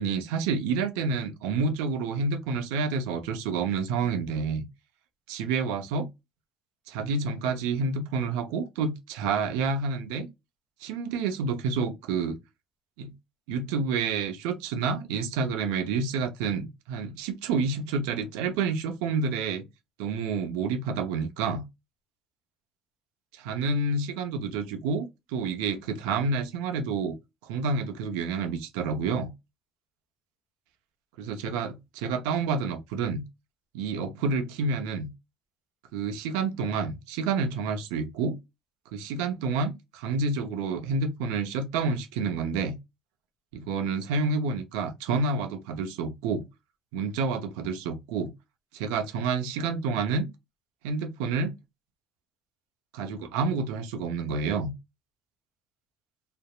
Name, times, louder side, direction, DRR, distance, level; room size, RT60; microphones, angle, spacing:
voice 1, 0.0-4.6 5.3-6.1 6.9-10.3 10.8-12.4 13.0-13.1 13.5-19.6 20.0-21.6 23.3-27.1 27.4-29.3 31.2-33.2 33.7-35.1 35.9-38.4 38.9-42.8 43.5-46.4 46.9-48.3 48.7-50.3 50.8-51.5 52.9-54.7, right 4 dB, 75° right, 0.6 m, -29 dB
3.3 x 2.0 x 2.3 m
hypercardioid pair, 70°, 0 cm